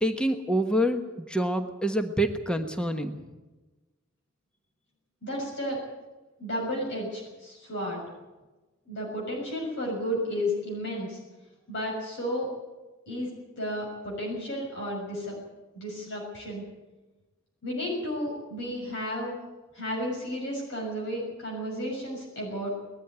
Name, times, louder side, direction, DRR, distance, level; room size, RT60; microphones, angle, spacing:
voice 1, 0.0-3.2, right 1 dB, 5° left, 5 dB, 1.2 m, -27 dB
voice 2, 5.2-5.8 6.4-8.0 8.9-11.2 11.7-12.5 13.1-13.3 13.6-15.3 15.7-16.6 17.6-19.4 19.7-22.8, equal, 60° left, -2 dB, 6.6 m, -32 dB
20.5 x 14.0 x 9.5 m, 1.2 s
head